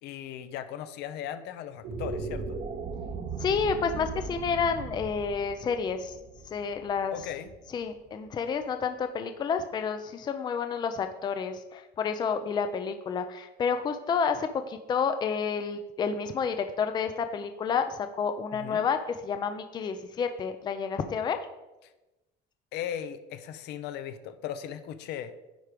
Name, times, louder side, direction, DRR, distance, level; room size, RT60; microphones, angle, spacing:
voice 1, 0.0-2.6 7.1-7.5 18.5-18.8 22.7-25.3, left 10 dB, 70° left, 11 dB, 0.7 m, -37 dB
sound 1, 1.7-8.1, right 4 dB, 40° right, 0.8 m, -38 dB
voice 2, 3.4-6.2 6.5-7.2 7.7-21.4, left 6 dB, 25° left, 8 dB, 0.5 m, -30 dB
10.5 x 4.8 x 5.1 m, 1.0 s
cardioid pair, 170°, 18 cm